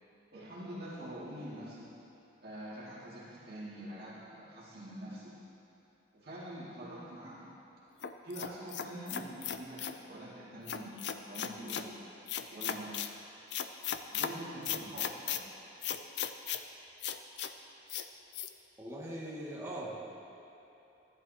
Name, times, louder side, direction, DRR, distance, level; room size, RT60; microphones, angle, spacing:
voice 1, 0.3-1.9 2.4-5.4 6.1-7.5 8.2-12.0 12.5-13.1 14.1-15.5, right 1 dB, 50° right, -8 dB, 2.1 m, -45 dB
sound 1, 8.0-10.0 10.7-11.9 12.3-13.1 13.5-14.3 14.6-15.4 15.8-16.6 17.0-17.5 17.9-18.1 18.3-18.5, left 9 dB, 60° left, 0.4 m, -36 dB
voice 2, 18.8-20.0, right 1 dB, 15° right, -7 dB, 1.9 m, -41 dB
14.0 x 11.0 x 2.8 m, 2.9 s
head